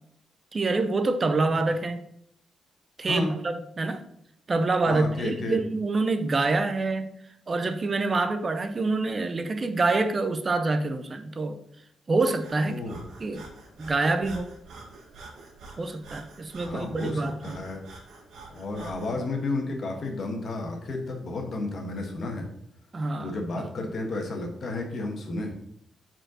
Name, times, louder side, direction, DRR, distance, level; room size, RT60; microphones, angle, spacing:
voice 1, 0.5-2.0 3.0-4.0 4.5-7.1 7.5-11.6 12.1-12.8 13.2-13.5 13.8-14.6 15.8-17.6 22.9-23.7, right 3 dB, 25° right, 0.5 m, -26 dB
voice 2, 4.9-5.6 12.7-13.0 16.6-17.8 18.5-22.5 23.2-25.6, left 2 dB, 45° left, 1.3 m, -32 dB
Breathing, 12.4-19.2, right 3 dB, 75° right, 1.5 m, -47 dB
5.1 x 4.4 x 6.1 m
wide cardioid pair, 150°, 0 cm